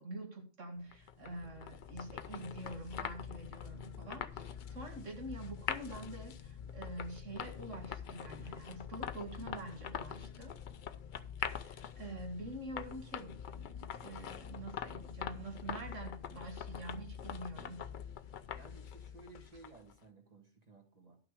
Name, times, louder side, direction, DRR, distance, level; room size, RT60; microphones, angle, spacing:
voice 1, 0.0-10.5 11.5-17.8, right 1 dB, 75° right, 3 dB, 2.4 m, -46 dB
sound 1, 0.9-19.9, left 8 dB, 55° left, 0.6 m, -44 dB
voice 2, 18.5-21.2, right 3 dB, 30° right, 1 dB, 1.8 m, -57 dB
12.0 x 6.0 x 4.9 m, 0.40 s
omnidirectional pair, 1.3 m